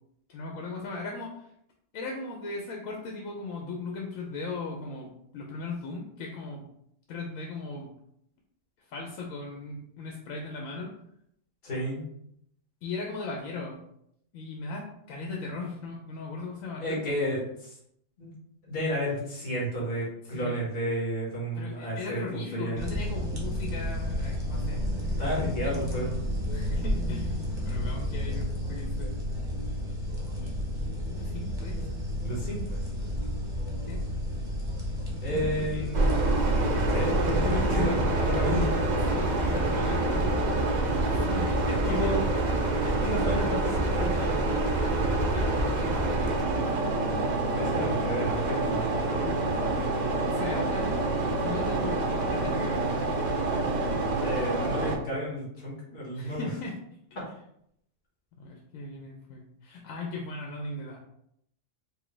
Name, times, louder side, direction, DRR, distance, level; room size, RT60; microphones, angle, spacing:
voice 1, 0.3-1.5 1.9-5.1 5.3-6.6 7.1-7.9 8.9-10.9 12.8-13.8 14.3-17.1 20.2-20.6 21.5-26.0 26.5-29.2 30.3-30.6 30.8-31.9 33.9-34.0 35.3-36.0 39.1-42.3 45.3-45.9 46.5-46.9 47.8-47.9 50.3-51.0 51.4-53.0 56.1-56.8 58.4-61.0, left 3 dB, 80° left, 0 dB, 1.0 m, -38 dB
voice 2, 11.6-12.0 16.8-17.7 18.2-18.3 18.7-22.8 25.2-26.2 32.2-32.8 35.2-36.1 36.9-38.7 41.6-42.3 43.0-44.4 47.5-49.4 54.2-56.5, equal, 45° left, -4 dB, 1.4 m, -32 dB
sound 1, 22.8-37.7, left 1 dB, 25° right, 0.7 m, -31 dB
sound 2, 35.9-55.0, right 2 dB, 65° right, 0.4 m, -26 dB
4.5 x 2.1 x 3.2 m, 0.73 s
omnidirectional pair, 1.4 m